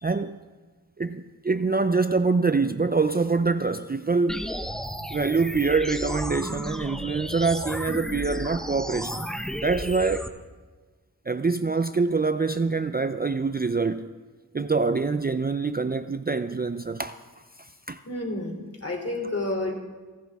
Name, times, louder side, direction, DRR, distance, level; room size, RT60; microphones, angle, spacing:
voice 1, 0.0-0.4 1.0-4.5 5.1-9.3 9.6-10.3 11.3-14.1 14.5-17.2 17.6-18.0, right 4 dB, 25° right, 0.5 m, -25 dB
sound 1, 4.3-10.3, equal, ahead, 1.0 m, -33 dB
voice 2, 18.0-19.7, left 2 dB, 40° left, 3.3 m, -30 dB
28.5 x 11.5 x 3.5 m
wide cardioid pair, 60°, 38 cm